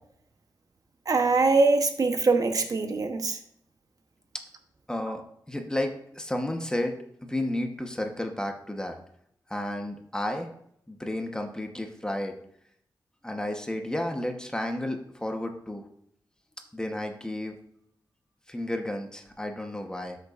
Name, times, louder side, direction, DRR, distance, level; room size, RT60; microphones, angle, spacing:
voice 1, 1.1-3.4 5.1-5.2, right 3 dB, 50° right, 6 dB, 0.9 m, -23 dB
voice 2, 4.9-5.2 5.5-7.0 7.2-9.0 9.5-10.5 10.9-12.3 13.2-15.8 16.7-17.6 18.5-20.2, left 1 dB, 10° left, 4 dB, 1.0 m, -32 dB
12.5 x 6.8 x 2.5 m, 0.70 s
wide cardioid pair, 125°, 8 cm